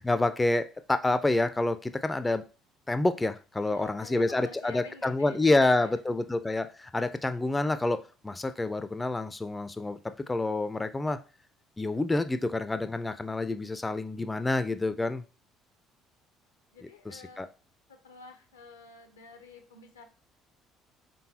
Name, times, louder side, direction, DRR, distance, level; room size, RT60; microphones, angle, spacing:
voice 1, 0.0-2.4 2.9-11.2 11.8-15.2 17.1-17.5, left 2 dB, 15° left, 11 dB, 0.4 m, -28 dB
voice 2, 3.6-6.0 16.7-17.5 17.9-20.0, left 4 dB, 85° left, 6 dB, 0.6 m, -49 dB
3.9 x 3.7 x 2.8 m, 0.33 s
figure-of-eight pair, 55°, 0 cm